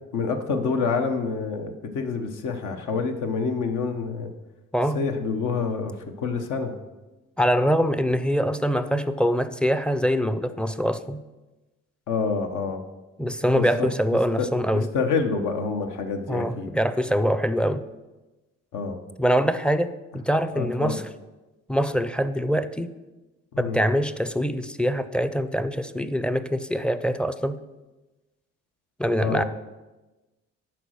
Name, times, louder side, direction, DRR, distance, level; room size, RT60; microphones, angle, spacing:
voice 1, 0.1-4.3 4.9-6.8 12.1-12.8 13.5-13.9 14.4-16.7 18.7-19.0 20.5-21.0 23.5-23.8 29.2-29.4, left 5 dB, 80° left, 5 dB, 1.1 m, -27 dB
voice 2, 7.4-11.2 13.2-14.9 16.3-17.8 19.2-21.0 21.7-22.9 23.6-27.6 29.0-29.4, equal, 5° left, 12 dB, 0.4 m, -24 dB
10.5 x 4.5 x 6.4 m, 1.1 s
cardioid pair, 90°, 30 cm